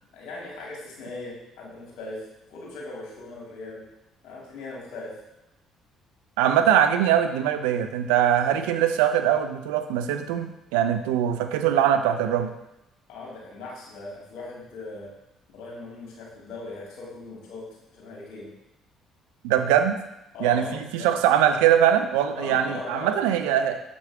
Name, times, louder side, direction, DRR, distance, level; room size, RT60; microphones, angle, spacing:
voice 1, 0.1-3.8 4.2-5.1 13.1-15.1 15.5-18.5 20.3-21.1 22.3-23.2, left 2 dB, 65° left, -4 dB, 2.7 m, -39 dB
voice 2, 6.4-12.5 19.4-20.0 20.4-20.7 20.9-23.8, right 10 dB, 75° right, 8 dB, 0.5 m, -22 dB
7.1 x 6.1 x 3.6 m, 0.91 s
hypercardioid pair, 50°, 0 cm